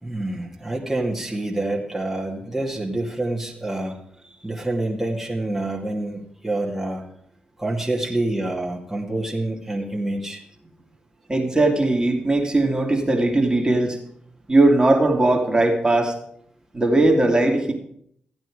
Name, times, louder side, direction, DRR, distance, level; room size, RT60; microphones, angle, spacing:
voice 1, 0.0-4.0 4.4-7.0 7.6-10.4, right 2 dB, 5° right, -3 dB, 2.5 m, -27 dB
voice 2, 11.3-14.0 14.5-16.2 16.7-17.7, right 2 dB, 25° right, 2 dB, 2.7 m, -19 dB
15.0 x 8.9 x 5.0 m, 0.69 s
supercardioid pair, 45°, 4 cm